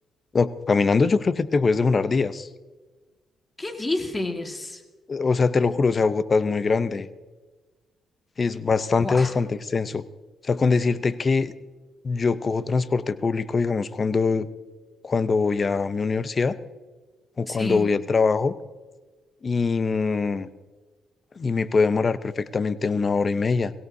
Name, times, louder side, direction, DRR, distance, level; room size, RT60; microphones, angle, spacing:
voice 1, 0.3-2.5 5.1-7.1 8.4-10.0 10.5-11.5 12.0-14.5 15.0-16.6 17.4-18.5 19.4-20.5 21.4-23.7, left 4 dB, 35° left, 14 dB, 0.7 m, -23 dB
voice 2, 3.6-4.8 9.0-9.3 17.5-17.9, left 2 dB, 20° left, 4 dB, 1.8 m, -29 dB
22.5 x 16.5 x 2.7 m, 1.3 s
cardioid pair, 90°, 0 cm